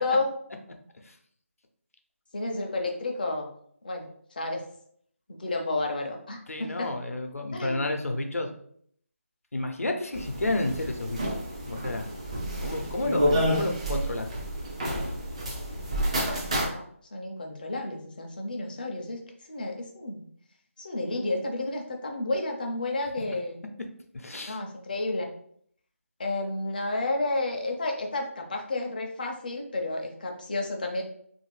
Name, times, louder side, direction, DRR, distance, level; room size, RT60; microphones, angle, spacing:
voice 1, 0.0-0.3 2.3-3.5 3.8-4.1 4.4-4.6 5.4-6.9 7.5-7.8 16.7-16.9 17.1-19.2 19.5-20.3 20.8-23.6 24.5-25.3 26.2-31.0, left 2 dB, 40° left, 2 dB, 0.6 m, -31 dB
voice 2, 6.5-8.5 9.5-11.2 11.6-12.1 12.5-14.3 24.1-24.6, left 2 dB, 85° left, 4 dB, 0.6 m, -30 dB
sound 1, 10.1-16.7, equal, 25° right, 0.4 m, -29 dB
2.8 x 2.5 x 3.2 m, 0.64 s
figure-of-eight pair, 170°, 8 cm